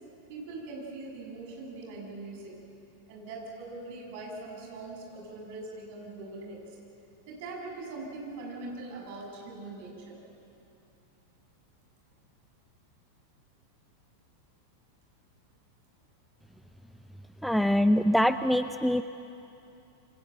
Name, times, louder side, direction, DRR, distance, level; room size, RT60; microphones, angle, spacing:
voice 1, 0.3-2.5 3.1-6.8 7.3-10.2, right 3 dB, 50° right, 0 dB, 7.8 m, -41 dB
voice 2, 17.4-19.0, equal, ahead, 11 dB, 0.6 m, -24 dB
28.5 x 24.0 x 8.0 m, 2.8 s
figure-of-eight pair, 90°, 0 cm